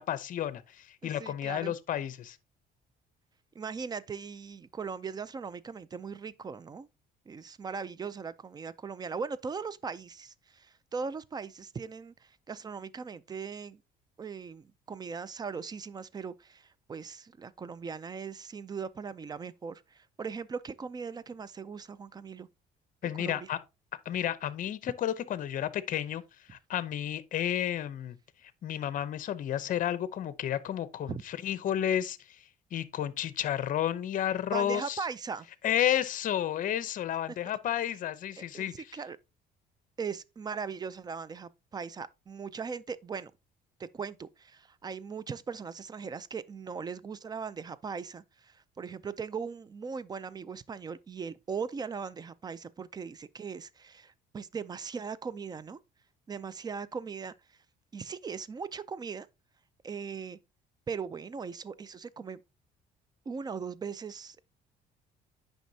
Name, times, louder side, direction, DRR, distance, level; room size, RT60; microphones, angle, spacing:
voice 1, 0.0-2.4 23.0-23.6 24.0-26.2 26.5-28.2 28.6-32.4 32.7-35.0 35.6-38.7, left 11 dB, 50° left, 0.7 m, -31 dB
voice 2, 1.0-1.7 3.5-6.9 7.3-13.8 14.2-22.5 23.2-23.5 31.1-31.2 34.5-35.5 38.4-39.2 40.0-43.3 43.8-55.8 56.3-57.3 57.9-59.3 59.8-60.4 60.9-62.4 63.3-64.4, right 5 dB, 25° right, 0.4 m, -39 dB
9.2 x 5.4 x 2.7 m
cardioid pair, 110°, 17 cm